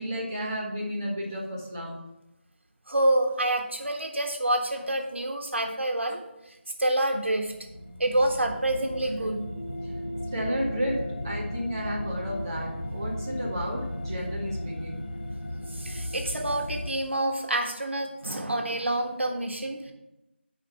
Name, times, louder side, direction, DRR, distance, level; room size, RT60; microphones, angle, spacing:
voice 1, 0.0-2.0 10.3-15.0, equal, 15° right, -5 dB, 1.1 m, -32 dB
voice 2, 2.9-6.2 6.8-7.5 8.0-9.5 15.7-19.9, right 1 dB, 75° right, 3 dB, 1.5 m, -27 dB
sound 1, 7.1-16.9, left 1 dB, 50° left, 1.2 m, -35 dB
8.3 x 5.1 x 5.7 m, 0.95 s
figure-of-eight pair, 175°, 6 cm